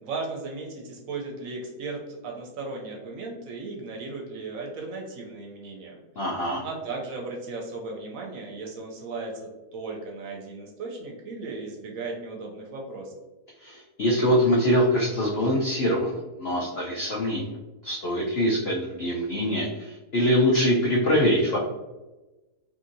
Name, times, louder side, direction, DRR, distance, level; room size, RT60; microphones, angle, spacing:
voice 1, 0.0-6.0 6.6-13.1, right 3 dB, 70° right, 0 dB, 0.9 m, -36 dB
voice 2, 6.2-6.6 13.6-17.5 17.8-21.6, equal, 85° left, -4 dB, 0.5 m, -24 dB
2.7 x 2.7 x 2.5 m, 1.1 s
omnidirectional pair, 1.7 m